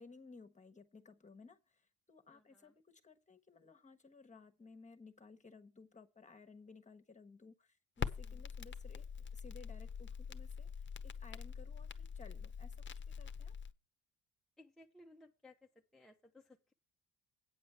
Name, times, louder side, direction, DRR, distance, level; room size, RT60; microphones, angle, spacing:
voice 1, 0.0-13.6, left 4 dB, 25° left, 1.3 m, -58 dB
voice 2, 2.3-2.7 8.2-8.4 14.6-15.6 15.9-16.7, left 2 dB, ahead, 0.8 m, -61 dB
Crackle, 8.0-13.7, left 6 dB, 40° left, 0.9 m, -44 dB
9.1 x 5.1 x 7.9 m
cardioid pair, 90°, 30 cm